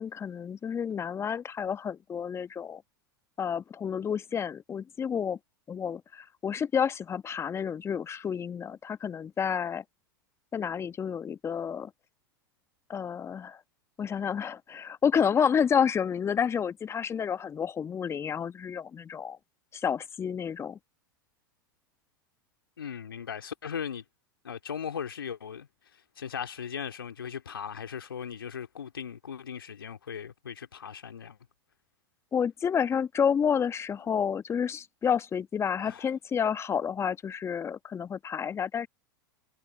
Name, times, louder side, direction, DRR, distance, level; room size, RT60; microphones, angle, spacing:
voice 1, 0.0-2.8 3.4-5.4 5.7-9.8 10.5-11.9 12.9-13.6 14.0-19.4 19.7-20.8 32.3-38.9, left 7 dB, 20° left, 1.3 m, -30 dB
voice 2, 22.8-24.0 24.4-25.7 26.2-31.4 35.8-36.1, left 7 dB, 80° left, 2.2 m, -38 dB
figure-of-eight pair, 90°, 12 cm